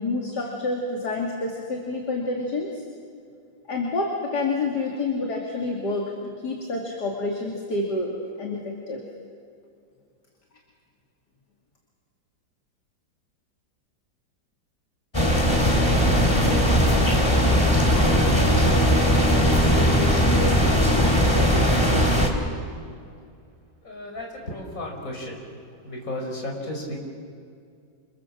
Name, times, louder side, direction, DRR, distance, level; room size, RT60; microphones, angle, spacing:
voice 1, 0.0-2.8 3.7-9.0, left 2 dB, 60° left, 0 dB, 3.0 m, -28 dB
sound 1, 15.1-22.3, equal, 15° left, 2.8 m, -19 dB
voice 2, 23.8-25.4 25.8-27.0, left 1 dB, 45° left, 1 dB, 5.6 m, -33 dB
28.0 x 27.0 x 7.5 m, 2.3 s
omnidirectional pair, 2.1 m